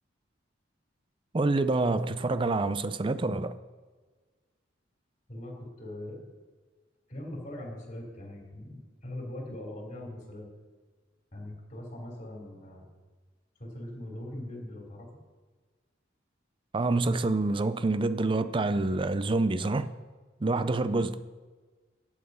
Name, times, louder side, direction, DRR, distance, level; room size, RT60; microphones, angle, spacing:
voice 1, 1.3-3.6 16.7-19.9 20.4-21.2, right 2 dB, 25° right, 0.4 m, -27 dB
voice 2, 5.3-6.2 7.1-10.5 11.3-12.8 13.6-15.1 20.4-20.7, left 1 dB, 40° left, 3.1 m, -41 dB
11.0 x 8.8 x 5.4 m
head